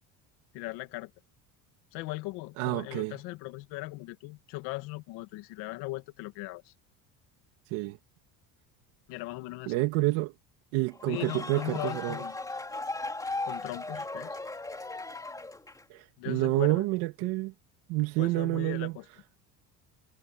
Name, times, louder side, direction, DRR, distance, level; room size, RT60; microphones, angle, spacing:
voice 1, 0.5-1.1 1.9-6.7 9.1-9.7 11.0-12.4 13.4-14.4 16.2-16.8 18.2-19.1, left 20 dB, 80° left, 2.3 m, -38 dB
voice 2, 2.6-3.2 7.7-8.0 9.7-10.3 10.7-12.2 15.9-17.5 17.9-19.0, right 20 dB, 85° right, 2.5 m, -28 dB
sound 1, 10.9-16.0, left 2 dB, 10° left, 3.2 m, -37 dB
cardioid pair, 140°, 38 cm